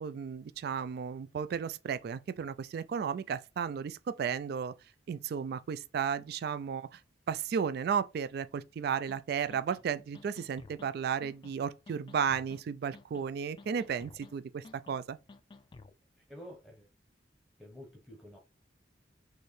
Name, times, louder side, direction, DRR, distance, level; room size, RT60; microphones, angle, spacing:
voice 1, 0.0-4.7 5.1-7.0 7.3-15.2, right 7 dB, 60° right, 0.3 m, -34 dB
sound 1, 9.1-9.2 9.5-9.8 10.1-10.9 11.2-11.5 11.9-12.6 12.9-13.3 13.6-14.3 14.6-15.0 15.3-15.9, left 3 dB, 25° left, 0.3 m, -53 dB
voice 2, 16.3-16.9 17.6-18.4, equal, ahead, 0.9 m, -49 dB
4.4 x 3.1 x 3.2 m
head